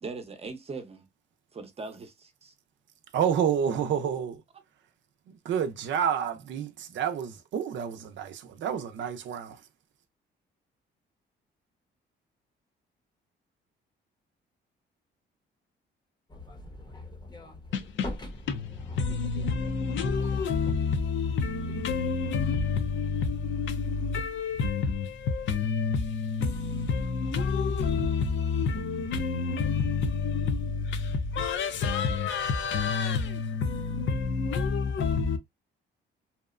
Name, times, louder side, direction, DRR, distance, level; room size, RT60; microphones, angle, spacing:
voice 1, 0.0-1.1 1.5-2.5, right 4 dB, 30° right, 0.7 m, -40 dB
voice 2, 3.1-4.3 5.3-9.6, right 8 dB, 70° right, 0.5 m, -29 dB
sound 1, 16.3-21.7, left 2 dB, 20° left, 0.7 m, -43 dB
voice 3, 17.7-35.4, left 5 dB, 70° left, 0.6 m, -28 dB
2.8 x 2.1 x 2.4 m
cardioid pair, 90°, 20 cm